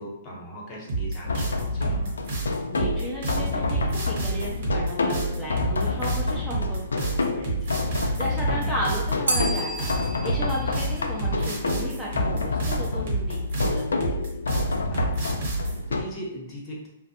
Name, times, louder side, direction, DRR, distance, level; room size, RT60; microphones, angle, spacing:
voice 1, 0.0-2.1 8.5-8.7 14.9-16.9, equal, 30° left, -3 dB, 0.9 m, -39 dB
sound 1, 0.9-15.8, right 3 dB, 60° right, 1.0 m, -29 dB
sound 2, 1.2-16.0, left 3 dB, 85° left, 0.3 m, -28 dB
voice 2, 2.7-14.2, right 1 dB, 5° right, -6 dB, 0.5 m, -35 dB
Bell, 9.3-12.1, right 1 dB, 85° right, 0.5 m, -33 dB
2.4 x 2.1 x 2.8 m, 0.86 s
hypercardioid pair, 125°, 0 cm